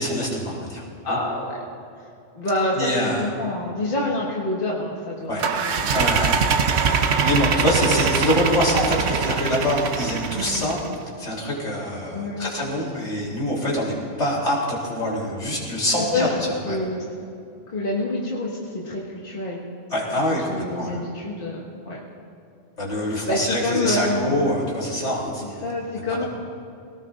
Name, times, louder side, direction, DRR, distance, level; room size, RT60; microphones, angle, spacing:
voice 1, 0.0-1.2 2.8-3.3 5.3-5.5 5.9-6.4 7.1-10.8 11.2-16.8 19.9-21.0 22.8-25.6 25.9-26.3, left 1 dB, 75° left, -4 dB, 3.6 m, -25 dB
voice 2, 1.0-1.6 2.0-2.1 2.3-5.8 11.8-11.9 12.1-12.5 16.0-16.3 16.7-17.0 17.7-19.6 20.5-22.0 23.1-24.4 25.4-26.2, left 2 dB, 45° left, -4 dB, 1.8 m, -27 dB
sound 1, 5.4-10.9, right 5 dB, 65° right, 1.0 m, -22 dB
22.5 x 18.0 x 2.5 m, 2.6 s
omnidirectional pair, 1.2 m